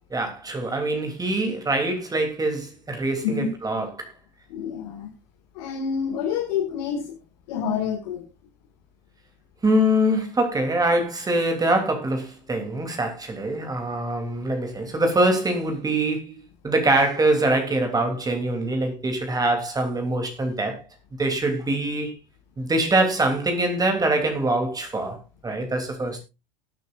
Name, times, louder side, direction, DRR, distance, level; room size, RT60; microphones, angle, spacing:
voice 1, 0.1-4.1 9.6-16.4 16.6-20.8 21.2-22.1 22.6-25.2 25.4-26.2, right 1 dB, 15° right, 3.0 m, -24 dB
voice 2, 4.5-5.1 5.6-7.2 7.5-8.2, left 7 dB, 65° left, 2.1 m, -27 dB
19.5 x 9.1 x 2.5 m
hypercardioid pair, 85°, 21 cm